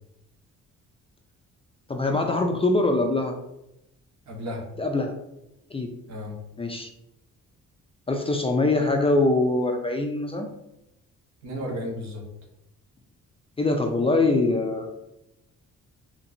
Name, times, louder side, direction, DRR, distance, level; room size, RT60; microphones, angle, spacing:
voice 1, 1.9-3.4 4.8-5.1 5.7-5.9 6.6-6.9 8.1-10.5 13.6-14.9, left 2 dB, 20° left, 3 dB, 0.5 m, -23 dB
voice 2, 4.3-4.6 6.1-6.3 11.4-12.2, equal, 65° right, 0 dB, 1.3 m, -33 dB
4.2 x 2.9 x 2.6 m, 0.85 s
cardioid pair, 90°, 30 cm